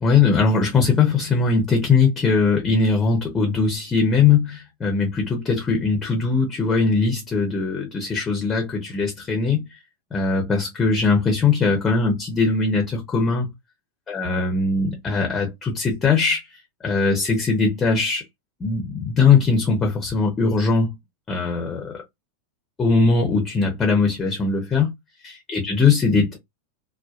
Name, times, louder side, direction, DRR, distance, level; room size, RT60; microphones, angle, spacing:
voice 1, 0.0-9.8 10.1-13.5 14.1-16.4 16.8-18.2 18.6-20.9 21.3-21.9 22.8-24.9 25.2-26.4, left 4 dB, 20° left, 0.8 m, -20 dB
2.7 x 2.2 x 2.3 m
figure-of-eight pair, 90°, 0 cm